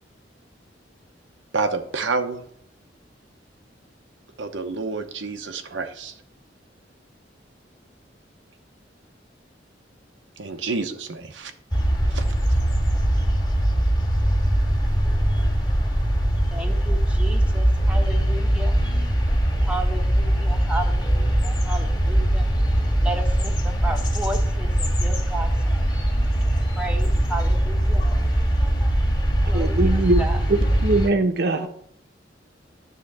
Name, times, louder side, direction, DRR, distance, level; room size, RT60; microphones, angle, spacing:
voice 1, 1.5-2.4 4.4-6.1 10.4-11.5 12.1-12.2, right 4 dB, 90° right, 0.8 m, -28 dB
sound 1, 11.7-31.1, right 1 dB, 20° left, 1.7 m, -21 dB
voice 2, 16.5-18.7 19.7-22.4 23.0-25.5 26.7-28.0 29.5-29.9 30.2-30.4 31.5-31.7, right 2 dB, 5° right, 1.0 m, -33 dB
voice 3, 29.5-30.2 30.5-31.7, right 2 dB, 60° right, 0.9 m, -21 dB
9.9 x 3.7 x 7.2 m
head